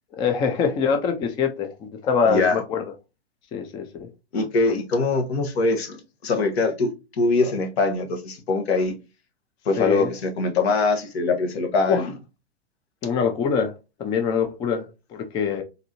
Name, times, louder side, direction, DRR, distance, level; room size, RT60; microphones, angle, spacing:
voice 1, 0.2-2.8 3.5-4.1 9.8-10.1 11.9-12.1 13.0-13.7 14.0-15.6, left 6 dB, 15° left, 0.3 m, -24 dB
voice 2, 2.2-2.6 4.3-8.9 9.6-12.1, left 3 dB, 70° left, 1.2 m, -23 dB
3.9 x 2.7 x 2.8 m
hypercardioid pair, 120°, 33 cm